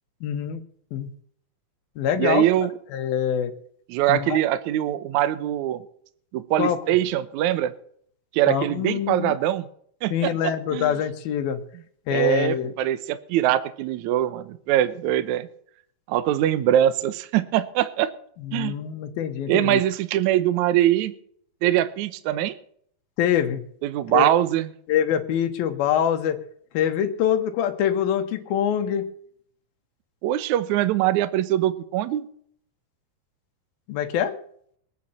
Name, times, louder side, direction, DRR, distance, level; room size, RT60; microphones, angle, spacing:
voice 1, 0.2-0.6 0.9-1.1 2.0-2.5 2.9-3.5 4.1-4.4 6.6-6.8 8.5-9.3 10.1-11.6 12.1-12.7 18.4-19.8 23.2-23.6 24.1-24.3 24.9-26.4 26.7-29.1 33.9-34.3, left 9 dB, 75° left, 6 dB, 3.1 m, -24 dB
voice 2, 2.2-2.7 3.9-5.8 6.3-7.7 8.3-9.7 10.0-10.9 12.1-15.5 16.1-18.1 18.5-18.8 19.5-21.1 21.6-22.6 23.8-24.7 30.2-32.3, right 12 dB, 75° right, 13 dB, 1.8 m, -22 dB
23.0 x 9.2 x 4.3 m, 0.63 s
omnidirectional pair, 4.3 m